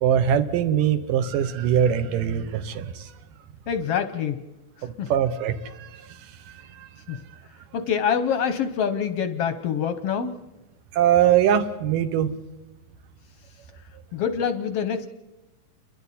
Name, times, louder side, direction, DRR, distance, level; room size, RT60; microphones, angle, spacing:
voice 1, 0.0-3.1 4.8-7.4 10.9-12.3, right 9 dB, 85° right, 8 dB, 2.7 m, -23 dB
voice 2, 3.7-4.4 5.0-5.1 7.1-7.2 7.7-10.3 14.1-15.1, left 7 dB, 75° left, 10 dB, 1.4 m, -25 dB
29.5 x 23.0 x 4.2 m, 1.1 s
omnidirectional pair, 3.8 m